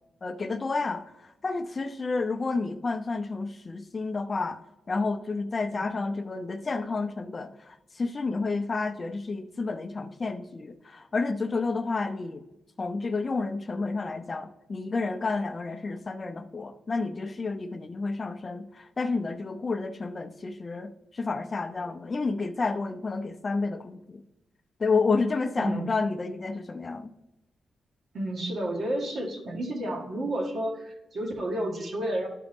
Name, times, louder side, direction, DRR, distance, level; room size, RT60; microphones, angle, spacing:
voice 1, 0.2-1.0 1.4-4.6 4.9-12.4 12.8-24.2 24.8-27.1, left 3 dB, 30° left, 8 dB, 0.5 m, -30 dB
voice 2, 25.6-25.9 28.1-32.3, right 1 dB, 50° right, 1 dB, 1.7 m, -31 dB
12.0 x 5.0 x 3.5 m, 0.91 s
wide cardioid pair, 135°, 0 cm